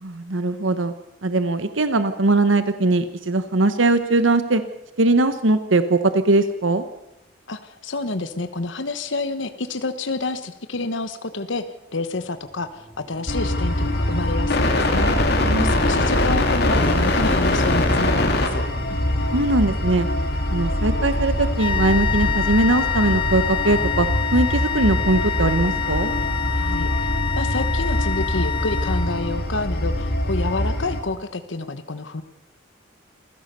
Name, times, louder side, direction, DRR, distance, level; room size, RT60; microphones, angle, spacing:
voice 1, 0.0-0.9 1.2-4.6 5.0-6.8 15.4-15.7 19.3-20.1 20.5-26.1, right 2 dB, 80° right, 10 dB, 1.1 m, -20 dB
voice 2, 7.5-11.6 11.9-15.3 15.6-18.7 26.5-32.2, left 3 dB, 75° left, 9 dB, 1.2 m, -29 dB
sound 1, 12.1-19.8, equal, 10° left, 2.2 m, -39 dB
sound 2, 13.3-31.0, left 1 dB, 55° left, 3.0 m, -23 dB
sound 3, 21.6-29.5, left 8 dB, 25° left, 0.7 m, -27 dB
27.0 x 16.0 x 6.8 m, 0.94 s
head